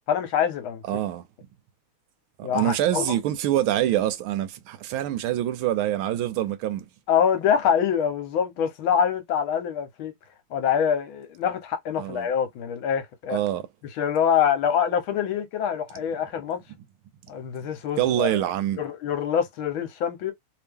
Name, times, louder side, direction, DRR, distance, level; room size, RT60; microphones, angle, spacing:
voice 1, 0.1-0.8 2.4-3.2 7.1-10.1 10.5-13.4 14.0-16.6 17.3-18.4 18.8-20.3, left 8 dB, 75° left, 1.6 m, -25 dB
voice 2, 0.9-1.2 2.4-6.9 12.0-12.3 13.3-13.7 18.0-18.8, right 12 dB, 80° right, 1.4 m, -25 dB
3.3 x 2.8 x 3.5 m
omnidirectional pair, 2.3 m